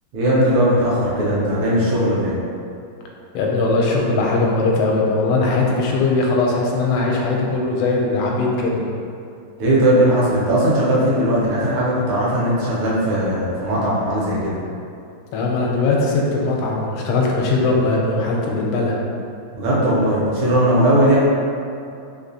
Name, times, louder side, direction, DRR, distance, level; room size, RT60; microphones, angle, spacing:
voice 1, 0.1-2.3 9.6-14.6 19.5-21.2, right 1 dB, 75° right, -7 dB, 1.5 m, -18 dB
voice 2, 3.3-8.8 15.3-19.0, left 3 dB, 85° left, -1 dB, 1.4 m, -20 dB
3.6 x 2.8 x 2.7 m, 2.6 s
omnidirectional pair, 2.2 m